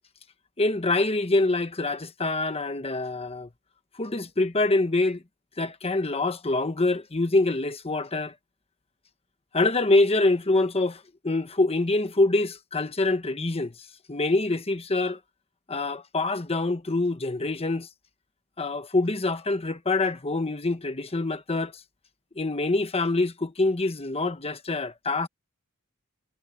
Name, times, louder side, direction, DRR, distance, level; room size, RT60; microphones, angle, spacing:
voice 1, 0.6-3.5 4.0-5.2 5.6-8.3 9.5-13.7 14.1-15.2 15.7-17.9 18.6-21.7 22.4-25.3, left 2 dB, 25° left, 1.2 m, -25 dB
head